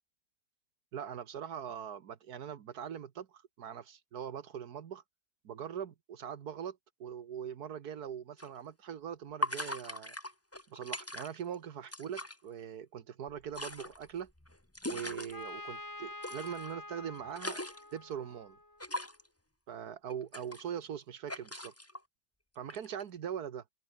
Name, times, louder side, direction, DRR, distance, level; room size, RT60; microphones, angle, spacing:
voice 1, 0.9-5.0 5.4-10.1 10.7-14.3 14.8-17.6 17.9-18.6 19.7-21.7 22.5-23.6, right 8 dB, 80° right, 1.7 m, -42 dB
sound 1, 8.4-8.5 9.4-11.5 11.8-12.3 13.3-15.3 16.2-16.7 17.1-18.0 18.8-19.3 20.1-21.0 21.3-22.0 22.7-23.0, left 1 dB, 10° left, 2.0 m, -40 dB
Trumpet, 15.3-19.0, left 2 dB, 55° left, 7.2 m, -47 dB
open air
omnidirectional pair, 1.6 m